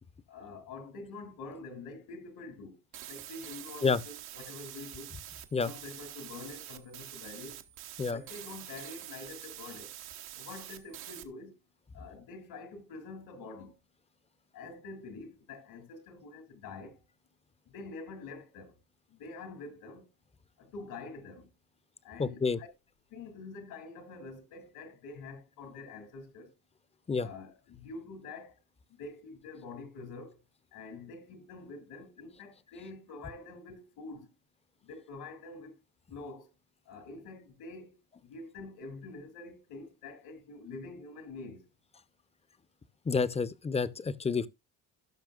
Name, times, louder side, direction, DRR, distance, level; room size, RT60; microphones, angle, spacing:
voice 1, 0.3-2.8 3.1-5.1 5.6-7.6 8.0-9.9 10.3-11.6 11.9-13.8 14.5-17.0 17.7-18.8 19.1-20.1 20.6-21.5 22.0-22.7 23.1-26.5 27.2-28.6 29.0-30.4 30.7-34.3 34.8-35.8 36.1-36.5 36.9-38.0 38.2-41.7, left 3 dB, 75° left, 2.6 m, -46 dB
sound 1, 2.9-11.3, right 12 dB, 85° right, 1.2 m, -46 dB
voice 2, 22.2-22.6 27.1-27.3 43.1-44.5, left 5 dB, 15° left, 0.6 m, -29 dB
17.0 x 5.8 x 2.4 m
cardioid pair, 90°, 36 cm